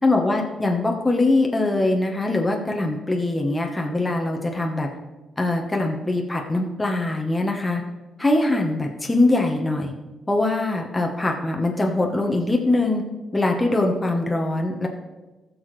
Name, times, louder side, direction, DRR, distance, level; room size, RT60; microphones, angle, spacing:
voice 1, 0.0-4.9 5.4-7.8 8.2-9.9 10.3-13.0 13.3-14.9, left 2 dB, 15° left, 0 dB, 1.2 m, -22 dB
15.0 x 6.4 x 3.3 m, 1.2 s
cardioid pair, 80°, 0 cm